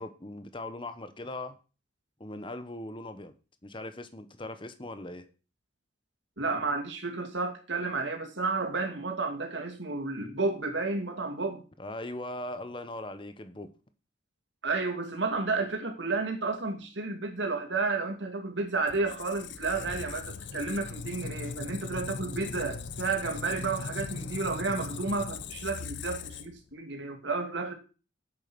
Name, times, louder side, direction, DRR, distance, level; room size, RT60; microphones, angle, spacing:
voice 1, 0.0-1.6 2.2-3.3 3.6-5.2 11.8-13.7, left 2 dB, 25° left, 1.1 m, -39 dB
voice 2, 6.4-11.6 14.6-27.7, right 3 dB, 70° right, 2.5 m, -31 dB
Squeak, 18.9-26.7, left 5 dB, 65° left, 0.8 m, -39 dB
8.5 x 8.1 x 6.2 m
head